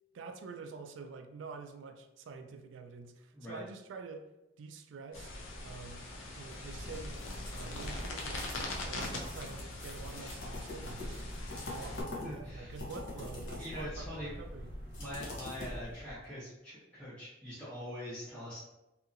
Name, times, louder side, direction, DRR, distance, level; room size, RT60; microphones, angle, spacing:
voice 1, 0.1-4.3 4.6-5.3 5.6-6.1 6.4-7.2 7.5-11.2 11.7-14.7, right 4 dB, 70° right, 7 dB, 0.3 m, -47 dB
sound 1, 5.1-12.0, left 2 dB, 85° left, 0.5 m, -42 dB
sound 2, 6.5-16.3, left 1 dB, 65° left, 0.9 m, -44 dB
voice 2, 12.2-12.8 13.6-14.3 15.0-18.7, equal, 5° left, -11 dB, 0.6 m, -43 dB
2.8 x 2.7 x 2.5 m, 0.95 s
head